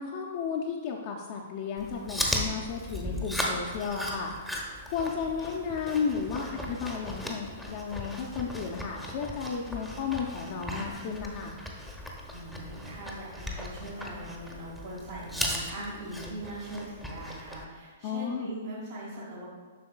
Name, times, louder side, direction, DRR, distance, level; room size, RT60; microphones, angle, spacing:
voice 1, 0.0-4.6 4.9-11.6 18.0-18.5, left 6 dB, 40° left, -2 dB, 0.6 m, -33 dB
Chewing mastication, 1.8-17.6, equal, ahead, 0.9 m, -37 dB
voice 2, 12.3-19.4, right 1 dB, 60° right, -7 dB, 1.5 m, -40 dB
7.5 x 5.9 x 2.4 m, 1.5 s
figure-of-eight pair, 110°, 0 cm